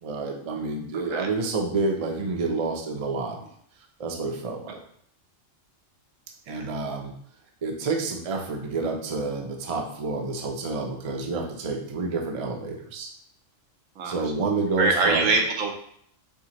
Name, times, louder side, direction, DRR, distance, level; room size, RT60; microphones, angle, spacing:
voice 1, 0.0-3.4 4.0-4.8 6.5-7.1 7.6-13.1 14.0-15.3, right 3 dB, 40° right, 2 dB, 0.5 m, -29 dB
voice 2, 14.8-15.7, right 3 dB, 85° right, 2 dB, 1.2 m, -23 dB
4.6 x 3.5 x 2.9 m, 0.66 s
omnidirectional pair, 1.3 m